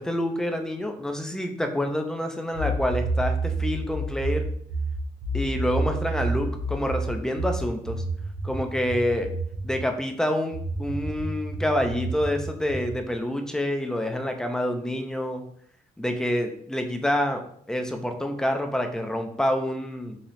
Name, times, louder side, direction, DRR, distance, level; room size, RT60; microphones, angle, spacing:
voice 1, 0.0-4.5 5.3-8.0 8.4-9.3 9.6-15.4 16.0-17.4 17.7-20.2, left 1 dB, 5° left, 5 dB, 0.4 m, -27 dB
sound 1, 2.5-9.8 10.5-13.0, right 2 dB, 70° right, 0.9 m, -29 dB
4.1 x 2.8 x 3.1 m, 0.64 s
cardioid pair, 135°, 16 cm